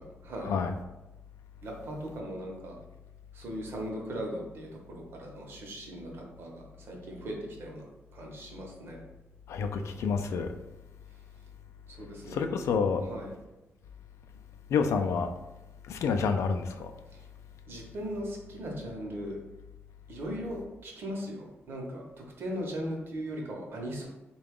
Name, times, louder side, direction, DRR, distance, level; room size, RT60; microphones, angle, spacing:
voice 1, 0.2-0.5 1.6-2.8 3.3-7.8 8.1-9.0 11.9-12.5 13.0-13.3 17.1-17.2 17.7-19.4 20.1-24.1, equal, 55° right, 0 dB, 0.8 m, -38 dB
voice 2, 9.5-10.5 12.3-13.0 14.7-15.3 15.9-16.9, left 5 dB, 80° left, 6 dB, 0.3 m, -28 dB
3.8 x 2.3 x 3.5 m, 1.0 s
wide cardioid pair, 170°, 5 cm